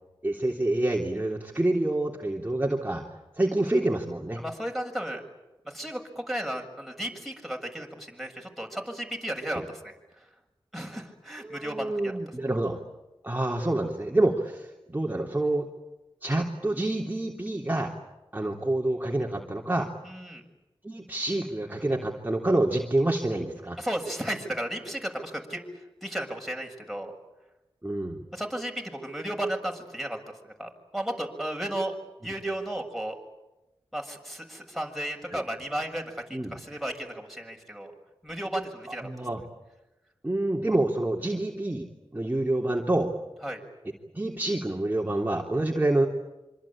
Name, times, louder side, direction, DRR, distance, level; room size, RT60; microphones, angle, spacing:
voice 1, 0.2-3.0 3.3-4.4 9.5-9.6 11.4-12.8 13.2-15.7 16.2-17.9 18.3-19.9 20.8-23.8 27.8-28.2 35.3-35.4 36.3-36.6 38.9-39.4 40.2-41.9 42.1-43.1 44.1-46.1, right 1 dB, 20° right, -1 dB, 3.4 m, -27 dB
voice 2, 4.4-5.2 5.7-10.3 10.7-12.2 20.0-20.4 23.8-25.6 26.0-27.1 28.3-30.2 30.4-32.0 32.2-33.2 33.9-37.9 38.2-39.1 43.4-43.6, right 1 dB, ahead, 1 dB, 7.1 m, -34 dB
26.0 x 26.0 x 8.8 m, 1.0 s
wide cardioid pair, 55°, 10 cm